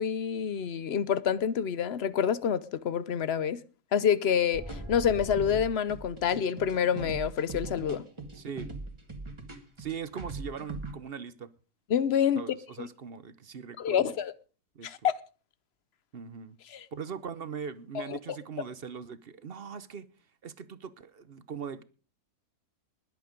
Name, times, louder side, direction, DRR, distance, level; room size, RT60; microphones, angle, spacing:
voice 1, 0.0-3.6 3.9-8.0 11.9-12.4 12.8-12.9 13.8-14.3 14.8-15.1 16.7-16.9 17.9-18.2, left 8 dB, 50° left, 0.9 m, -27 dB
sound 1, 4.5-10.9, right 2 dB, 20° right, 1.8 m, -40 dB
voice 2, 8.3-8.7 9.8-11.5 12.4-14.1 14.8-14.9 16.1-16.6 16.9-20.0 20.4-21.8, right 7 dB, 45° right, 0.8 m, -40 dB
20.5 x 8.2 x 5.2 m
omnidirectional pair, 1.7 m